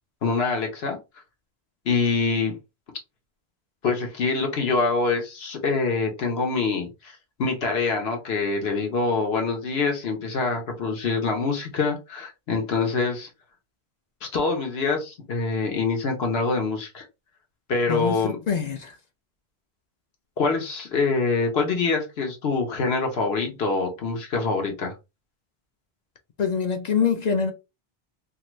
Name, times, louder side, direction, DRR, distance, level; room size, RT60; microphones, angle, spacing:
voice 1, 0.2-1.0 1.9-2.5 3.8-13.3 14.2-17.0 17.7-18.4 20.4-24.9, left 4 dB, 75° left, 1.1 m, -25 dB
voice 2, 17.9-19.0 26.4-27.5, left 6 dB, 55° left, 0.5 m, -25 dB
2.7 x 2.5 x 3.1 m
omnidirectional pair, 1.1 m